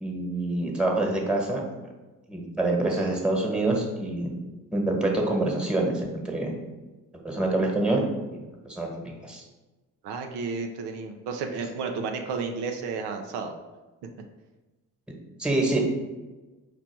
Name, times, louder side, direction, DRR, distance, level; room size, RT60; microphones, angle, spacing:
voice 1, 0.0-1.6 2.3-4.3 4.7-6.5 7.2-8.0 8.6-9.4 15.4-15.8, right 2 dB, ahead, 0 dB, 1.3 m, -26 dB
voice 2, 10.0-13.5, right 4 dB, 80° right, 4 dB, 0.6 m, -32 dB
4.6 x 2.5 x 4.5 m, 1.2 s
supercardioid pair, 50°, 39 cm